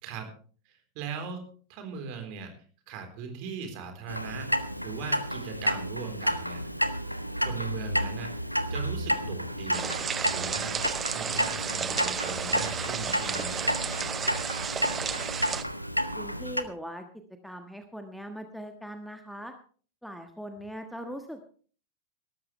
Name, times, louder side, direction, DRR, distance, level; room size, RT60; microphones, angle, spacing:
voice 1, 0.7-2.5 2.9-4.5 4.8-6.6 7.0-8.3 8.7-10.8 11.1-13.8, right 5 dB, 45° right, 6 dB, 3.8 m, -39 dB
Clock, 4.1-16.6, equal, 90° left, 0.8 m, -31 dB
sound 1, 9.7-15.6, right 7 dB, 20° right, 0.9 m, -33 dB
sound 2, 11.5-16.8, right 9 dB, 65° right, 1.9 m, -51 dB
voice 2, 16.1-17.0 17.4-19.5 20.0-21.4, equal, ahead, 6 dB, 1.4 m, -40 dB
18.5 x 13.5 x 3.3 m, 0.42 s
figure-of-eight pair, 90°, 0 cm